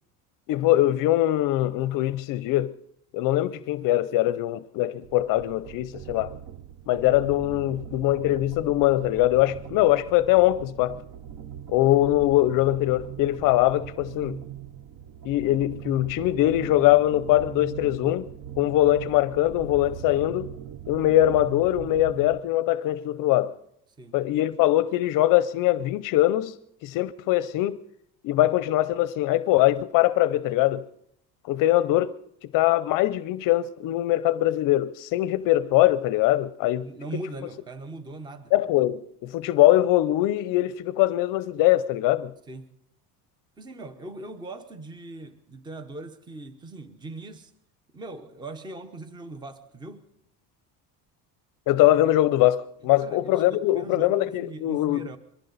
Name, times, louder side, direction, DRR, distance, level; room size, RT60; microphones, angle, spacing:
voice 1, 0.5-2.7 3.1-6.3 6.9-11.0 11.7-14.4 15.3-18.3 18.6-20.5 20.9-23.5 24.1-26.5 26.8-27.8 28.2-30.8 31.5-32.1 32.4-36.9 38.5-42.3 51.7-55.1, left 15 dB, 60° left, 0.6 m, -22 dB
sound 1, 5.0-22.5, right 10 dB, 55° right, 0.8 m, -40 dB
voice 2, 36.8-38.5 42.5-42.8 43.6-47.5 47.9-50.1 53.0-55.2, right 2 dB, 10° right, 0.8 m, -40 dB
22.5 x 15.0 x 4.0 m
cardioid pair, 140°, 37 cm